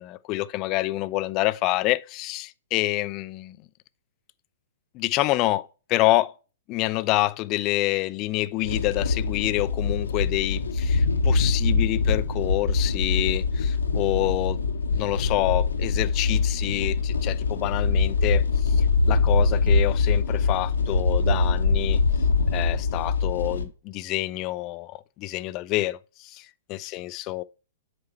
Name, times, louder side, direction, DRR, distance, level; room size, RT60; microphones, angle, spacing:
voice 1, 0.0-3.6 4.9-6.3 6.7-14.6 14.9-22.0 22.5-27.4, left 18 dB, 35° left, 0.4 m, -27 dB
sound 1, 8.6-23.7, left 4 dB, 80° left, 0.9 m, -23 dB
7.0 x 4.4 x 4.4 m
hypercardioid pair, 115°, 0 cm